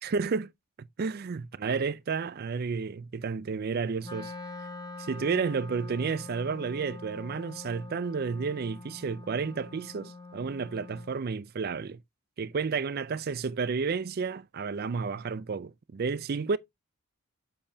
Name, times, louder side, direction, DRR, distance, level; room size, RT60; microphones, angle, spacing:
voice 1, 0.0-0.5 0.8-4.3 5.0-12.0 12.4-16.6, right 5 dB, 45° right, 0.4 m, -31 dB
Wind instrument woodwind instrument, 4.0-11.2, left 3 dB, 20° left, 0.8 m, -44 dB
7.6 x 6.8 x 2.7 m
head